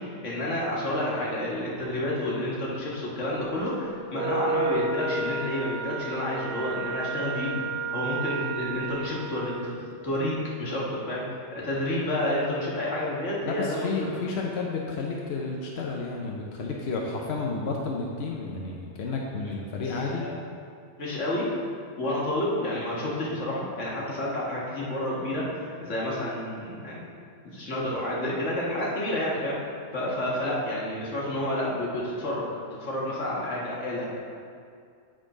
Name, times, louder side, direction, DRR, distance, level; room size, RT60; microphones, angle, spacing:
voice 1, 0.0-7.6 7.9-14.2 19.9-20.3 21.0-21.5 22.0-27.1 27.4-29.6 29.9-32.5 32.8-34.1, left 1 dB, 80° left, -5 dB, 1.8 m, -30 dB
Wind instrument woodwind instrument, 4.1-9.7, right 4 dB, 60° right, 0.8 m, -32 dB
voice 2, 13.4-20.2, left 3 dB, 65° left, -1 dB, 0.9 m, -31 dB
8.6 x 3.8 x 4.9 m, 2.3 s
omnidirectional pair, 1.2 m